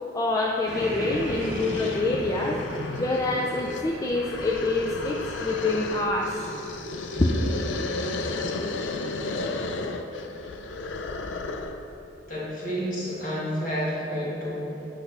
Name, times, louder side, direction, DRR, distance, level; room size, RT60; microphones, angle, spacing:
voice 1, 0.1-2.6 3.0-6.4 7.2-7.4, left 2 dB, 20° left, -2 dB, 0.3 m, -26 dB
sound 1, 0.7-0.8 1.1-11.9, left 3 dB, 85° left, 0.4 m, -33 dB
sound 2, 0.7-9.6, right 1 dB, ahead, 1.6 m, -40 dB
voice 2, 12.3-14.9, equal, 50° left, -6 dB, 1.7 m, -30 dB
8.4 x 5.6 x 3.3 m, 2.8 s
head